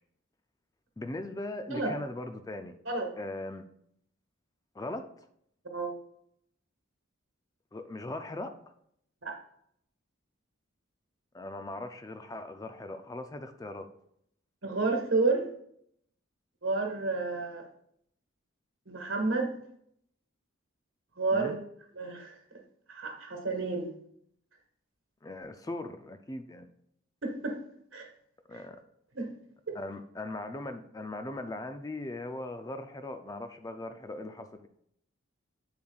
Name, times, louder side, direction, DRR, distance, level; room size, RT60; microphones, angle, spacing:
voice 1, 1.0-2.7 3.2-3.6 4.7-5.1 7.7-8.6 11.3-13.9 21.3-21.6 25.2-26.7 28.5-28.8 29.7-34.7, left 2 dB, 20° left, 8 dB, 0.4 m, -39 dB
voice 2, 5.6-6.0 9.2-9.4 14.6-15.4 16.6-17.6 18.9-19.5 21.2-21.5 21.9-22.3 22.9-23.9 27.2-27.6 27.9-28.1 29.1-29.3 29.7-29.8, right 3 dB, 85° right, 2 dB, 1.4 m, -30 dB
7.7 x 7.1 x 2.4 m, 0.70 s
head